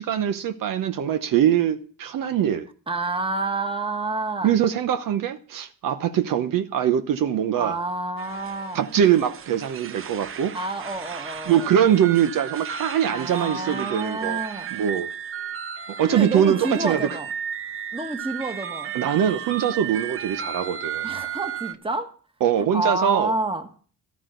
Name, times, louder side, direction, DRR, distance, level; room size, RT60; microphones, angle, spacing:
voice 1, 0.0-2.7 4.4-7.8 8.7-10.5 11.5-14.4 14.7-15.1 15.9-17.0 18.9-21.1 22.4-23.3, right 9 dB, 65° right, 0.9 m, -22 dB
voice 2, 2.9-4.5 7.6-8.8 10.5-11.7 13.1-14.7 16.0-17.3 17.9-18.9 21.0-22.1 22.6-23.7, right 2 dB, 15° right, 1.5 m, -29 dB
sound 1, 8.2-21.7, right 8 dB, 35° right, 0.8 m, -34 dB
13.5 x 12.5 x 3.9 m
cardioid pair, 115°, 36 cm